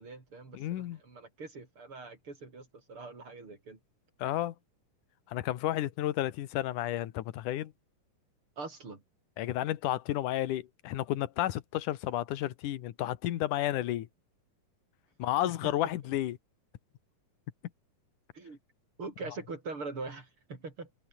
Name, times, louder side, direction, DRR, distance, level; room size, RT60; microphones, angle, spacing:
voice 1, 0.0-3.8 8.6-9.0 15.4-15.5 18.3-18.6 19.0-20.9, right 3 dB, 40° right, 5.5 m, -43 dB
voice 2, 0.5-1.0 4.2-4.5 5.3-7.7 9.4-14.1 15.2-16.4, left 13 dB, 75° left, 2.7 m, -32 dB
omnidirectional pair, 3.8 m